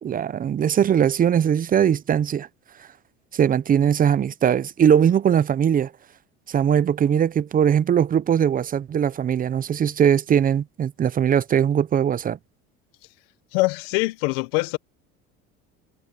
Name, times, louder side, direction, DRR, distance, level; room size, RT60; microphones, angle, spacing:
voice 1, 0.0-2.5 3.3-5.9 6.5-12.4, right 8 dB, 30° right, 0.6 m, -20 dB
voice 2, 13.5-14.8, left 23 dB, 85° left, 0.9 m, -23 dB
supercardioid pair, 110°, 29 cm